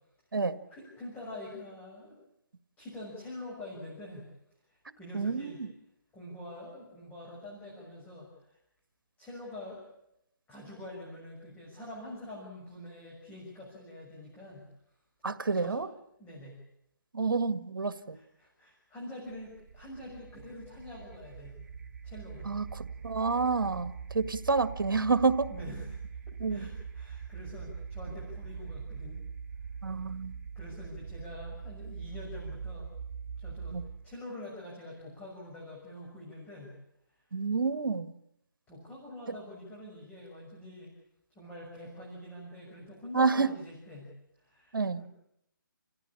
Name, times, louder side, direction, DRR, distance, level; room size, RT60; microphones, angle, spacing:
voice 1, 0.7-2.2 2.8-4.3 4.7-5.6 6.1-8.6 9.2-9.8 10.5-14.7 15.5-15.8 16.2-16.6 18.0-21.5 22.0-22.5 25.5-26.0 26.5-29.2 30.5-32.9 33.4-33.8 34.0-36.7 37.2-37.3 38.7-40.9 41.3-44.1 44.4-45.0, left 1 dB, 10° left, -4 dB, 6.5 m, -45 dB
voice 2, 5.1-5.7 15.2-15.9 17.1-18.2 22.5-25.5 26.4-26.7 29.8-30.3 33.7-33.8 37.3-38.1 43.1-43.5 44.7-45.0, right 4 dB, 75° right, 12 dB, 1.8 m, -29 dB
sound 1, 19.3-34.2, right 6 dB, 50° right, 1.2 m, -42 dB
30.0 x 16.0 x 8.6 m, 0.79 s
figure-of-eight pair, 155°, 11 cm